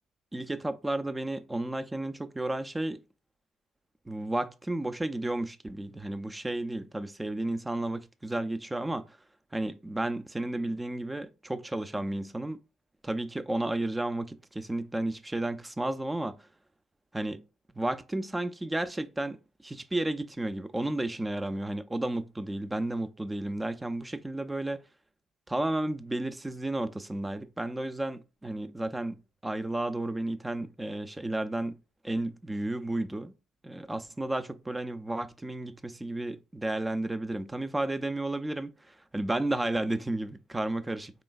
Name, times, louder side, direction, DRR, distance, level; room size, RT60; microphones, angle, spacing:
voice 1, 0.3-3.0 4.1-9.2 9.5-12.6 13.0-16.4 17.1-17.4 17.7-19.4 19.6-24.8 25.5-31.8 32.0-33.3 33.6-41.2, right 1 dB, 15° right, 0.5 m, -32 dB
4.1 x 3.1 x 2.3 m
hypercardioid pair, 55°, 0 cm